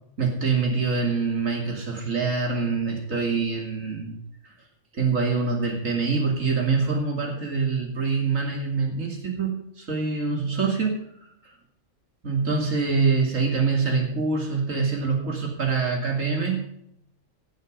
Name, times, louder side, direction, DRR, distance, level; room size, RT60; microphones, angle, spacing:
voice 1, 0.2-4.2 4.9-11.0 11.4-11.5 12.2-16.6, right 4 dB, 80° right, 1 dB, 2.9 m, -25 dB
15.5 x 8.4 x 5.2 m, 0.71 s
omnidirectional pair, 1.4 m